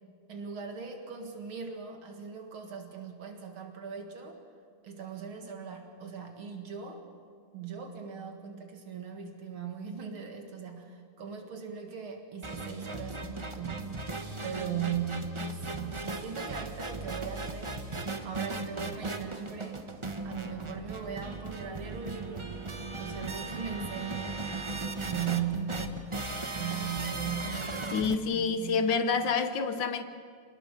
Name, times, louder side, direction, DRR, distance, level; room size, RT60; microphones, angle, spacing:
voice 1, 0.3-4.4 4.8-7.0 7.5-13.9 14.4-17.8 18.2-19.8 20.2-22.7 23.0-24.4 25.0-26.2 26.5-27.7 28.3-28.9, right 7 dB, 80° right, 2.7 m, -38 dB
sound 1, 12.4-28.1, right 2 dB, 25° right, 0.7 m, -37 dB
voice 2, 27.9-30.0, left 5 dB, 65° left, 1.7 m, -28 dB
27.5 x 19.0 x 6.9 m
omnidirectional pair, 2.3 m